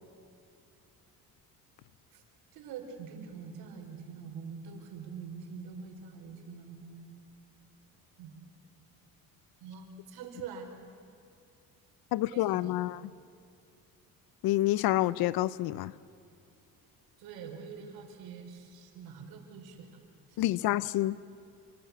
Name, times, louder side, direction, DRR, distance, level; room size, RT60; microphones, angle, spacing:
voice 1, 2.5-7.0 8.2-8.3 9.6-10.7 12.3-12.7 17.2-20.0 20.3-20.5, right 6 dB, 85° right, 4 dB, 4.6 m, -45 dB
voice 2, 12.1-13.0 14.4-15.9 20.4-21.2, left 15 dB, 80° left, 18 dB, 0.7 m, -28 dB
28.0 x 25.0 x 8.4 m, 2.5 s
cardioid pair, 130°, 36 cm